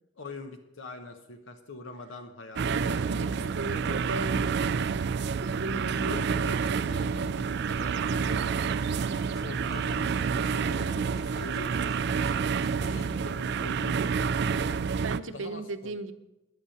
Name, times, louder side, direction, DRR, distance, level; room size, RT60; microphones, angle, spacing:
voice 1, 0.2-4.0 6.0-8.8 9.4-12.0 12.7-14.6 15.3-15.9, left 2 dB, 70° left, 7 dB, 1.0 m, -44 dB
sound 1, 2.6-15.2, right 5 dB, 55° right, 0.4 m, -28 dB
voice 2, 2.7-4.8 5.4-6.2 15.0-16.1, right 2 dB, 70° right, 10 dB, 0.8 m, -36 dB
sound 2, 8.2-13.1, equal, ahead, 1.7 m, -52 dB
10.5 x 8.2 x 7.1 m, 0.91 s
head